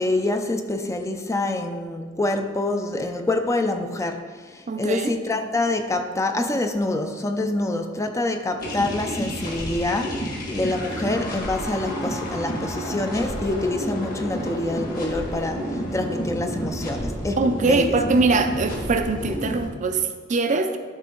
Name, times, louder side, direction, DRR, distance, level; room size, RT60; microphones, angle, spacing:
voice 1, 0.0-18.0, left 2 dB, 15° left, 6 dB, 0.5 m, -26 dB
voice 2, 4.7-5.1 17.4-20.8, right 3 dB, 40° right, 7 dB, 0.5 m, -22 dB
sound 1, 8.6-19.7, equal, 45° left, 1.8 m, -30 dB
12.0 x 4.5 x 3.9 m, 1.5 s
head